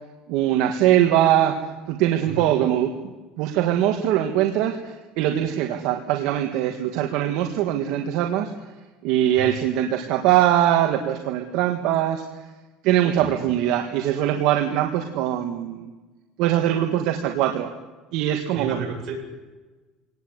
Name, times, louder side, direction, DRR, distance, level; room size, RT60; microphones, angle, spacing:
voice 1, 0.3-1.5 1.9-8.5 9.0-12.2 12.8-15.9 16.4-17.7 18.1-18.8, right 12 dB, 75° right, 4 dB, 1.7 m, -22 dB
voice 2, 18.5-19.2, right 4 dB, 55° right, 1 dB, 7.8 m, -32 dB
24.5 x 18.5 x 8.1 m, 1.2 s
supercardioid pair, 115°, 0 cm